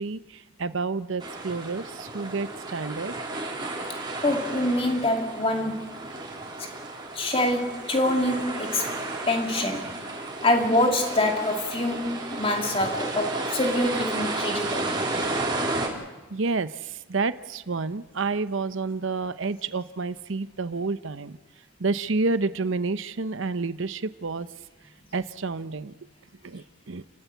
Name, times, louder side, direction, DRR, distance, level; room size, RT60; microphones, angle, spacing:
voice 1, 0.0-3.1 16.3-21.4 21.8-24.5 25.1-25.9 26.4-27.0, right 3 dB, 65° right, 0.7 m, -29 dB
sound 1, 1.2-15.9, right 2 dB, 20° right, 3.6 m, -33 dB
voice 2, 4.2-5.9 7.1-8.9 9.3-9.9 10.4-14.9, left 1 dB, 25° left, 2.4 m, -25 dB
30.0 x 12.5 x 8.2 m
head